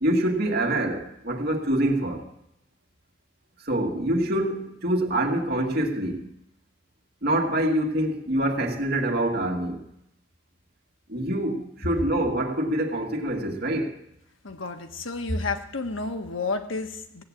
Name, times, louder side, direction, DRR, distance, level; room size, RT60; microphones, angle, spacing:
voice 1, 0.0-2.2 3.6-6.3 7.2-9.8 11.1-14.0, right 1 dB, 50° right, 2.1 m, -25 dB
voice 2, 14.4-17.2, left 3 dB, 80° left, 1.4 m, -30 dB
16.5 x 8.1 x 8.6 m
head